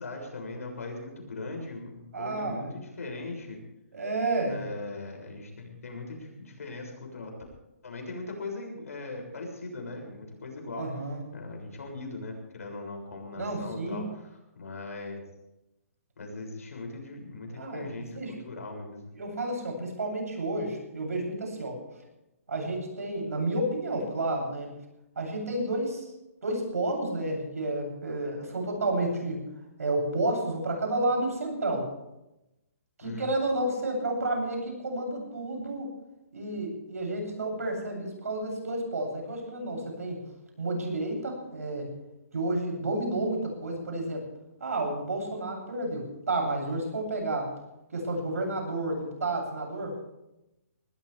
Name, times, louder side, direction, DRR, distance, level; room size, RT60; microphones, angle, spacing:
voice 1, 0.0-3.6 4.4-7.4 7.8-10.9 11.3-15.2 16.2-19.0 33.0-33.3, left 2 dB, 80° left, 2 dB, 6.8 m, -39 dB
voice 2, 2.1-2.7 3.9-4.6 10.8-11.2 13.4-14.0 17.6-18.3 19.1-21.8 22.5-24.7 25.2-26.1 26.4-29.4 29.8-31.9 33.0-35.9 36.3-40.2 40.6-41.9 42.3-44.2 44.6-47.5 47.9-50.0, right 2 dB, 85° right, 1 dB, 7.9 m, -31 dB
19.5 x 19.0 x 3.5 m, 0.92 s
hypercardioid pair, 160°, 8 cm